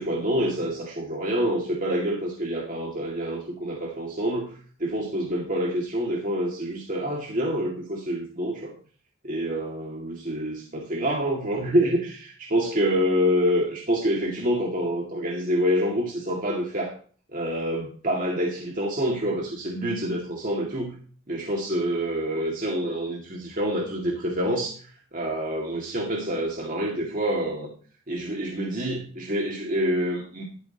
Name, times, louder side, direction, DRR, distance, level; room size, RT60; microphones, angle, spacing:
voice 1, 0.0-8.7 9.2-16.9 17.3-21.0 21.3-24.8 25.1-27.7 28.1-30.4, equal, 40° right, -1 dB, 2.2 m, -27 dB
12.5 x 12.0 x 3.0 m, 0.42 s
head